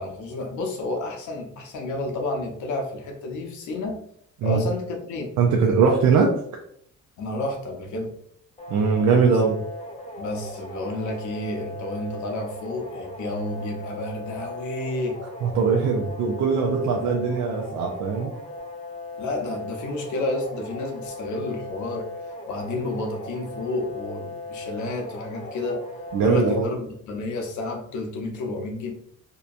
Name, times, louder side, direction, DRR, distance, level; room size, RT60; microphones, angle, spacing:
voice 1, 0.0-4.0 4.4-5.3 7.2-8.1 10.2-15.2 19.2-22.1 22.5-25.8 26.2-28.9, left 2 dB, 75° left, 2 dB, 0.7 m, -30 dB
voice 2, 5.4-6.3 8.7-9.6 15.4-18.3 26.1-26.7, right 5 dB, 75° right, 0 dB, 0.5 m, -21 dB
sound 1, 8.6-26.6, left 2 dB, 20° left, 0.7 m, -38 dB
2.8 x 2.2 x 2.4 m, 0.68 s
cardioid pair, 90°, 30 cm